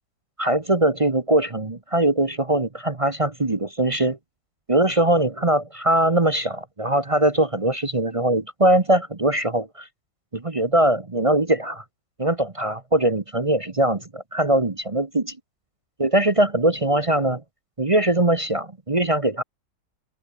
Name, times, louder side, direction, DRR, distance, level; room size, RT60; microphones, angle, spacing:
voice 1, 0.4-4.2 4.7-9.9 10.3-11.8 12.2-15.2 16.0-17.4 17.8-19.4, right 1 dB, 25° right, 0.8 m, -21 dB
open air
omnidirectional pair, 2.0 m